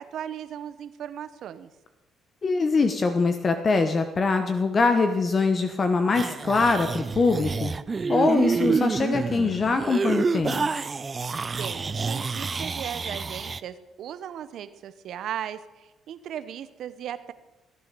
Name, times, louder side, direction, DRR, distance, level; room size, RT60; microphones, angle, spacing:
voice 1, 0.0-1.7 11.6-17.3, right 9 dB, 70° right, 13 dB, 0.8 m, -37 dB
voice 2, 2.4-7.7 8.1-10.7, left 4 dB, 40° left, 7 dB, 1.1 m, -23 dB
sound 1, 6.1-13.6, right 4 dB, 35° right, 0.5 m, -28 dB
15.5 x 9.4 x 6.8 m, 1.1 s
supercardioid pair, 75°, 0 cm